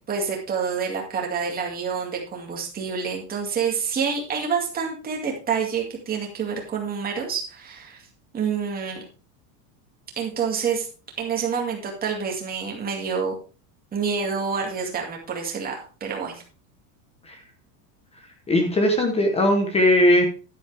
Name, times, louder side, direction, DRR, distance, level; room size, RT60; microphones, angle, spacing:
voice 1, 0.1-8.0 8.3-9.0 10.2-10.9 11.2-13.3 13.9-16.4, right 6 dB, 15° right, 0 dB, 2.3 m, -27 dB
voice 2, 18.5-20.3, left 1 dB, 10° left, 5 dB, 1.0 m, -19 dB
11.0 x 9.3 x 3.4 m, 0.36 s
supercardioid pair, 170°, 50 cm